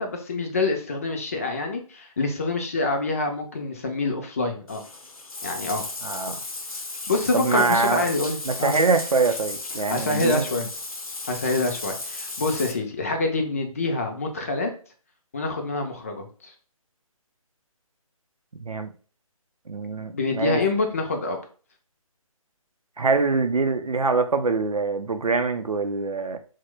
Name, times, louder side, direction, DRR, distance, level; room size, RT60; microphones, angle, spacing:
voice 1, 0.0-4.8 5.4-5.8 7.1-8.8 9.9-10.7 11.3-14.7 15.3-16.5 20.1-21.4, left 3 dB, 25° left, 0.4 m, -26 dB
Bathtub (filling or washing), 4.7-12.7, left 2 dB, 75° left, 0.7 m, -35 dB
voice 2, 6.0-6.4 7.3-8.0 8.5-10.4 18.6-18.9 19.7-20.6 23.0-26.4, right 4 dB, 85° right, 0.5 m, -24 dB
2.9 x 2.1 x 3.2 m
figure-of-eight pair, 145°, 18 cm